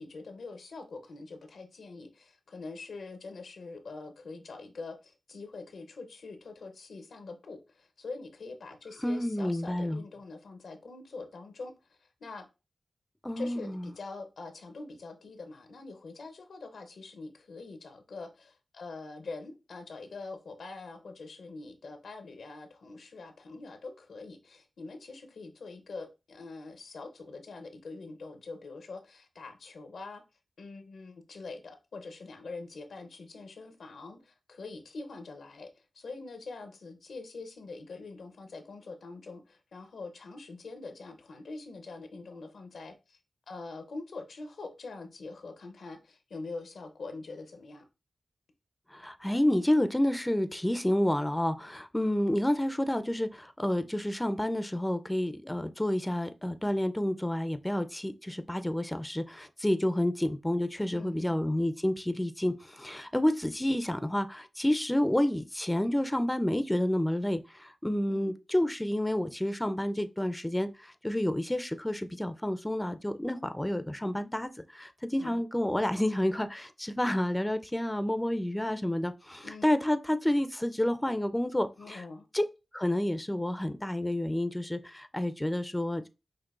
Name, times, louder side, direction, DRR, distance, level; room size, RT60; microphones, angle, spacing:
voice 1, 0.0-12.5 13.4-30.2 30.6-43.2 43.5-47.8 60.9-61.4 68.1-68.3 75.2-75.4 79.4-79.7 81.8-82.3, left 3 dB, 85° left, 0.6 m, -44 dB
voice 2, 9.0-10.0 13.2-13.9 48.9-82.0 82.3-82.4 82.7-86.1, left 1 dB, 15° left, 0.4 m, -29 dB
5.9 x 2.5 x 2.4 m
cardioid pair, 40°, 0 cm